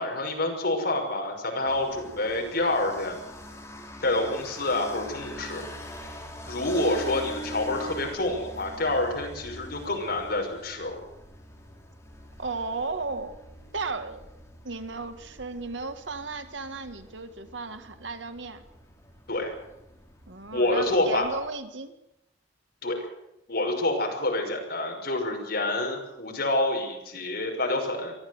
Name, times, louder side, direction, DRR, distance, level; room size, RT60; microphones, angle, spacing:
voice 1, 0.0-3.2 4.0-5.6 6.5-11.0 19.3-19.5 20.5-21.3 22.8-23.1 23.5-28.1, left 2 dB, 60° left, 2 dB, 6.0 m, -27 dB
sound 1, 1.6-21.5, equal, 15° left, 4.0 m, -44 dB
voice 2, 12.4-13.4 13.7-14.2 14.6-18.6 20.3-22.0, right 3 dB, 85° right, 8 dB, 1.8 m, -35 dB
23.0 x 14.5 x 8.1 m, 0.86 s
head